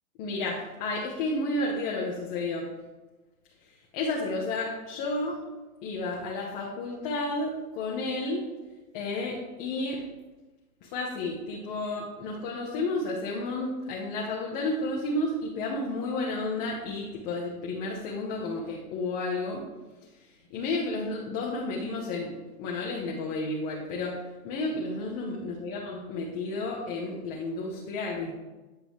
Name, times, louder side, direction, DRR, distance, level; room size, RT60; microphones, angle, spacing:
voice 1, 0.2-2.7 3.9-5.4 5.8-8.4 8.9-10.0 10.8-19.6 20.5-24.2 24.4-28.3, left 2 dB, 25° left, -3 dB, 1.0 m, -31 dB
9.4 x 5.1 x 3.1 m, 1.2 s
hypercardioid pair, 140°, 45 cm